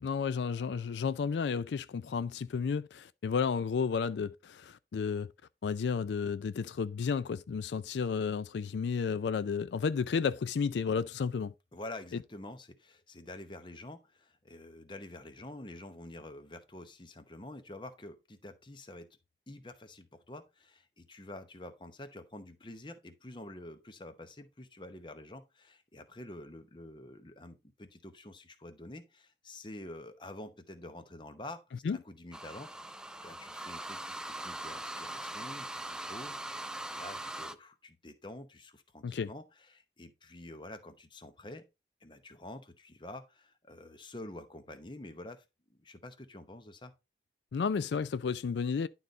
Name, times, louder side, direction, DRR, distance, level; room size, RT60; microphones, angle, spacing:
voice 1, 0.0-5.3 5.6-11.5 31.8-32.0 39.0-39.3 47.5-48.9, left 6 dB, 80° left, 0.4 m, -32 dB
voice 2, 11.7-19.2 19.5-31.6 31.9-32.9 33.2-41.6 42.0-45.4 45.7-46.9, left 1 dB, 25° left, 0.9 m, -48 dB
sound 1, 32.3-37.6, right 1 dB, 5° right, 0.4 m, -41 dB
11.0 x 4.0 x 3.9 m
head